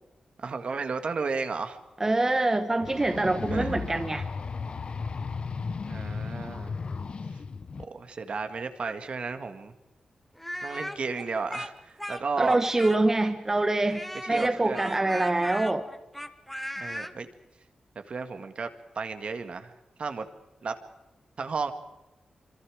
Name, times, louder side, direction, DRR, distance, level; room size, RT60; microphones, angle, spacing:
voice 1, 0.4-1.8 3.5-4.0 5.9-6.7 7.9-9.7 10.6-12.6 14.3-14.8 16.8-17.3 18.1-18.7 18.9-19.7 20.0-20.3 20.6-20.7 21.4-21.7, right 4 dB, 55° right, 8 dB, 1.8 m, -33 dB
voice 2, 2.0-4.3 12.4-14.0 14.3-15.9, right 2 dB, 20° right, 8 dB, 1.2 m, -25 dB
sound 1, 2.8-7.8, left 5 dB, 50° left, 0.9 m, -35 dB
Speech, 10.4-13.3 13.9-17.1, equal, 5° left, 1.1 m, -37 dB
26.5 x 25.5 x 5.1 m, 1.0 s
wide cardioid pair, 125°, 2 cm